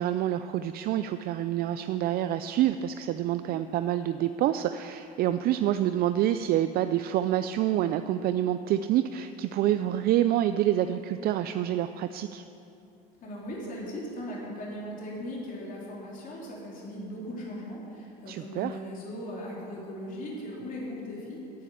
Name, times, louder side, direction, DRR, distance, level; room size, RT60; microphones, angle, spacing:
voice 1, 0.0-12.5 18.3-18.8, right 12 dB, 50° right, 10 dB, 0.4 m, -27 dB
voice 2, 13.2-21.6, equal, 45° left, -4 dB, 3.4 m, -38 dB
10.5 x 9.6 x 8.3 m, 2.8 s
supercardioid pair, 100°, 20 cm